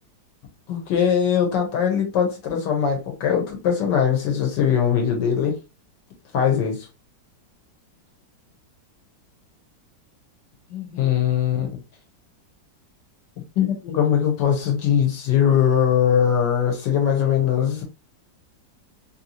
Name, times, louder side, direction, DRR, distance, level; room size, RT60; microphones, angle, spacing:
voice 1, 0.7-5.5 6.3-6.9 10.7-11.7 13.6-17.8, left 8 dB, 75° left, 1.5 m, -21 dB
3.2 x 2.8 x 2.7 m
omnidirectional pair, 2.0 m